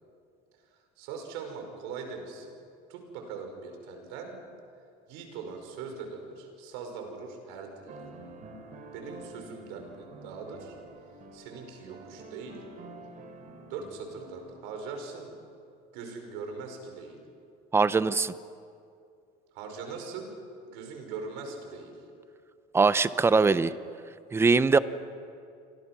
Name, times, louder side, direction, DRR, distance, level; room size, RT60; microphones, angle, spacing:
voice 1, 1.0-2.5 2.9-4.4 5.1-8.1 8.9-10.8 11.3-12.6 13.7-15.4 15.9-17.2 19.5-20.3 20.6-21.9, right 5 dB, 85° right, 4 dB, 5.4 m, -41 dB
sound 1, 7.9-14.6, right 2 dB, 45° right, 3.3 m, -48 dB
voice 2, 17.7-18.3 22.7-23.7 24.3-24.8, right 4 dB, 15° right, 15 dB, 0.6 m, -22 dB
29.0 x 24.0 x 6.1 m, 2.4 s
cardioid pair, 145°, 19 cm